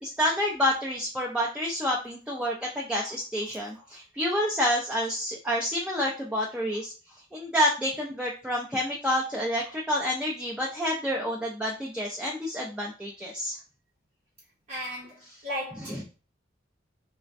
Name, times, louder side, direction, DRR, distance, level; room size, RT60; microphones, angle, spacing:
voice 1, 0.0-6.9 7.3-13.6 15.8-16.0, equal, 5° right, 0.4 m, -28 dB
voice 2, 14.7-16.0, equal, 45° right, 0.7 m, -36 dB
3.3 x 2.1 x 2.5 m
head